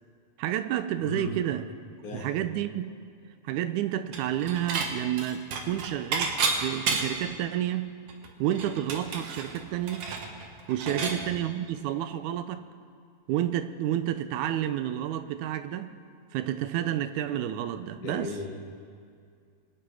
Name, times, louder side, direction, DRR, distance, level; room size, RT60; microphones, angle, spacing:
voice 1, 0.4-1.7 2.1-3.0 3.4-6.4 6.6-7.9 8.4-10.1 10.7-12.7 13.3-15.9 16.3-18.3, right 11 dB, 85° right, 11 dB, 2.0 m, -30 dB
voice 2, 1.0-1.4 2.0-2.3 10.8-11.1 18.0-18.5, left 3 dB, 85° left, 0 dB, 3.4 m, -36 dB
Dishes pots and pans / Chink clink, 4.1-4.9 5.2-7.3 7.7-7.8 8.1-11.2, right 4 dB, 60° right, 2.1 m, -31 dB
23.0 x 9.3 x 4.8 m, 2.3 s
omnidirectional pair, 3.4 m